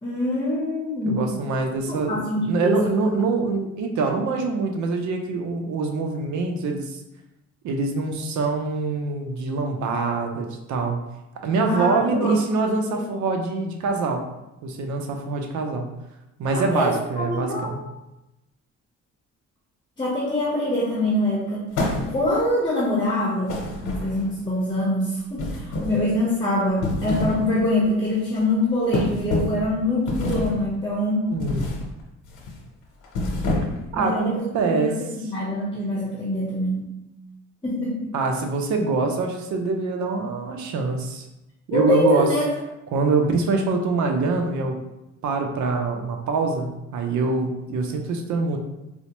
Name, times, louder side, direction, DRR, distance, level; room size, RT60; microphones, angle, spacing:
voice 1, 0.0-1.2 1.9-2.8 11.6-12.4 16.5-17.8 20.0-21.6 22.1-31.3 33.9-36.9 37.6-38.1 41.7-42.5, left 1 dB, 15° left, -4 dB, 0.8 m, -24 dB
voice 2, 1.1-7.0 7.6-11.0 11.4-14.2 14.6-15.8 16.4-17.8 31.3-31.7 33.9-35.0 38.1-41.2 41.7-42.3 42.9-44.8 45.2-48.6, right 3 dB, 70° right, 4 dB, 0.6 m, -24 dB
sound 1, 21.7-22.4 23.5-24.4 25.4-26.1 26.7-27.5 27.8-28.1 28.9-29.7 30.1-30.6 31.4-31.9 32.2-32.5 33.0-33.9, left 2 dB, 90° left, 0.8 m, -27 dB
4.1 x 2.1 x 2.9 m, 0.94 s
cardioid pair, 90°, 30 cm